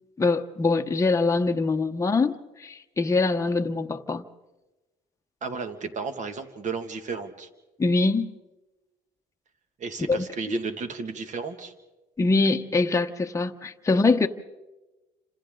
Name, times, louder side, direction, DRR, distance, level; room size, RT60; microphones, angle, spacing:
voice 1, 0.2-4.2 7.8-8.3 10.1-10.3 12.2-14.3, left 3 dB, 20° left, 1.0 m, -23 dB
voice 2, 5.4-7.5 9.8-11.7, right 4 dB, 45° right, 2.2 m, -33 dB
29.0 x 26.5 x 3.9 m
cardioid pair, 110°, 17 cm